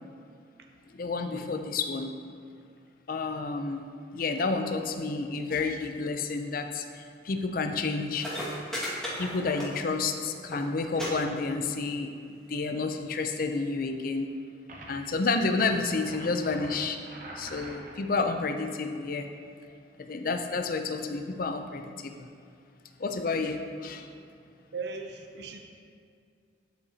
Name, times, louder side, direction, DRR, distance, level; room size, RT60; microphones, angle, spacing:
voice 1, 0.9-2.1 3.1-3.9 4.1-8.3 9.2-12.1 12.5-14.3 14.9-17.0 17.4-19.3 20.0-22.3 23.0-24.1, left 3 dB, 50° left, 6 dB, 0.5 m, -30 dB
sound 1, 7.9-8.0 8.1-10.1 10.3-10.6 10.9-11.1 11.4-11.9 12.7-12.8, equal, 5° left, 1.8 m, -35 dB
sound 2, 14.7-15.1 15.5-18.0, right 1 dB, 45° right, 1.0 m, -45 dB
voice 2, 24.7-25.6, right 4 dB, 60° right, 4 dB, 0.5 m, -38 dB
12.5 x 4.9 x 2.8 m, 2.3 s
head